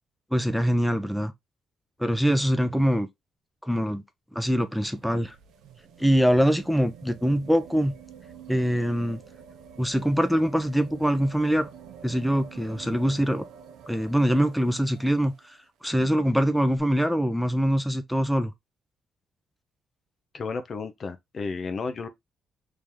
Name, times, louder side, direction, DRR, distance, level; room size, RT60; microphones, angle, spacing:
voice 1, 0.3-1.3 2.0-3.1 3.6-4.0 4.3-5.4 6.0-7.9 8.5-9.2 9.8-11.7 12.0-13.4 13.9-18.5, equal, ahead, 0.5 m, -24 dB
sound 1, 4.6-15.6 16.8-16.9, right 7 dB, 85° right, 0.6 m, -48 dB
voice 2, 20.3-22.1, left 4 dB, 45° left, 0.6 m, -32 dB
3.3 x 2.8 x 3.6 m
cardioid pair, 90°, 0 cm